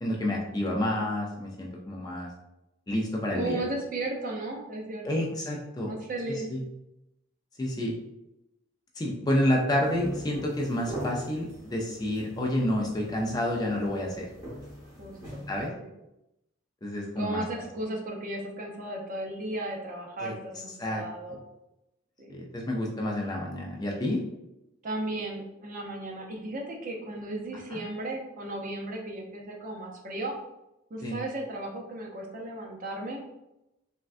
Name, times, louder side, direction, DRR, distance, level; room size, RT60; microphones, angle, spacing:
voice 1, 0.0-2.3 2.9-3.6 5.0-5.9 6.3-6.6 7.6-7.9 9.0-14.3 15.5-15.7 16.8-17.4 20.2-20.3 20.8-21.0 21.3-21.4 22.3-24.2 27.7-27.8 31.0-31.2, left 1 dB, 20° left, -2 dB, 0.4 m, -29 dB
voice 2, 3.3-5.3 5.8-6.5 15.0-15.4 15.8-15.9 17.2-21.4 22.2-22.3 24.8-30.4 30.9-33.2, right 2 dB, 40° right, 0 dB, 0.5 m, -35 dB
sound 1, 9.8-15.7, equal, 20° right, 0.9 m, -41 dB
3.5 x 2.2 x 2.5 m, 0.89 s
head